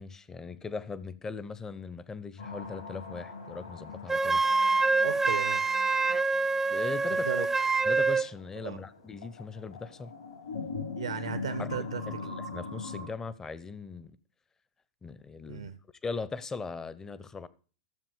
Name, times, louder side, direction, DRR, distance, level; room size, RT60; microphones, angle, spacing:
voice 1, 0.0-4.4 6.7-7.5 7.8-10.1 11.6-11.7 12.1-14.2 15.0-15.7 16.0-17.5, left 4 dB, 15° left, 0.8 m, -39 dB
sound 1, 2.4-13.1, left 4 dB, 75° left, 5.2 m, -42 dB
Wind instrument woodwind instrument, 4.1-8.3, right 3 dB, 10° right, 0.4 m, -26 dB
voice 2, 5.0-5.6 7.1-7.5 8.6-8.8 11.0-12.0 15.5-15.7, right 8 dB, 70° right, 0.8 m, -35 dB
13.0 x 7.3 x 5.1 m
figure-of-eight pair, 95°, 3 cm